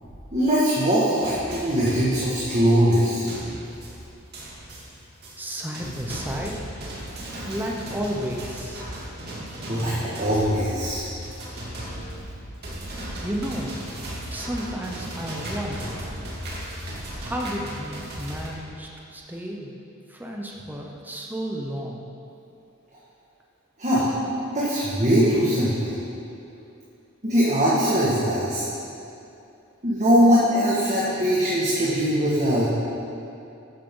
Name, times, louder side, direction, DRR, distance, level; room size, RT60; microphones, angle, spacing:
voice 1, 0.0-3.3 7.2-7.5 9.7-11.0 23.8-24.1 24.5-26.0 27.2-28.6 29.8-32.7, equal, 35° right, -9 dB, 1.9 m, -21 dB
sound 1, 1.2-18.5, equal, 50° right, 2.6 m, -36 dB
voice 2, 5.4-6.7 7.4-8.8 13.2-13.8 14.3-16.0 17.2-19.7 20.1-22.0, equal, 10° right, -1 dB, 0.8 m, -32 dB
13.0 x 10.5 x 3.9 m, 2.7 s
head